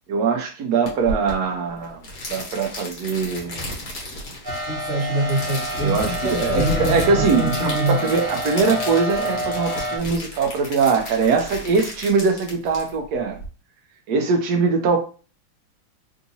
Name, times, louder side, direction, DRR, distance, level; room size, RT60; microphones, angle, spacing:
voice 1, 0.1-2.0 2.3-3.6 5.8-13.4 14.1-15.0, right 5 dB, 80° right, 3 dB, 0.8 m, -22 dB
sound 1, 0.9-13.5, left 1 dB, 50° left, 1.3 m, -35 dB
sound 2, 4.4-10.0, left 1 dB, 35° right, 0.4 m, -28 dB
voice 2, 4.7-8.0, right 2 dB, 55° right, -5 dB, 0.8 m, -25 dB
sound 3, 5.5-8.7, left 2 dB, 80° left, 1.4 m, -31 dB
3.6 x 2.7 x 2.7 m, 0.35 s
omnidirectional pair, 2.3 m